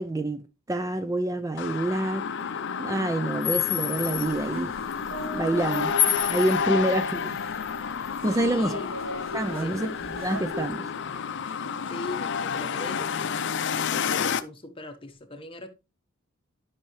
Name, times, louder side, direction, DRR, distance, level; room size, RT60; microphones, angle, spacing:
voice 1, 0.0-2.2 2.8-4.7 5.2-5.9 6.3-7.4 8.2-8.7 9.3-9.9 10.2-10.9, right 1 dB, 15° right, 0.4 m, -27 dB
sound 1, 1.6-14.4, left 7 dB, 60° left, 0.5 m, -29 dB
sound 2, 4.0-10.7, left 1 dB, 70° right, 1.5 m, -39 dB
voice 2, 8.4-8.9 9.4-9.8 11.4-11.6 11.8-15.7, left 2 dB, 25° left, 1.1 m, -40 dB
10.5 x 5.7 x 3.1 m
head